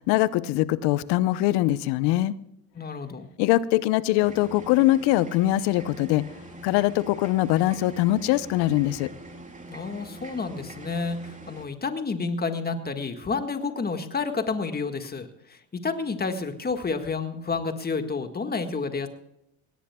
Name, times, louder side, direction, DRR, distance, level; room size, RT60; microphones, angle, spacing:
voice 1, 0.0-2.3 3.4-6.2 6.6-9.1, left 15 dB, 75° left, 17 dB, 0.9 m, -22 dB
voice 2, 2.8-3.3 9.7-19.1, left 4 dB, 25° left, 7 dB, 1.8 m, -30 dB
sound 1, 4.2-11.7, right 1 dB, 20° right, 3.3 m, -44 dB
21.0 x 17.5 x 2.3 m, 0.82 s
supercardioid pair, 75°, 41 cm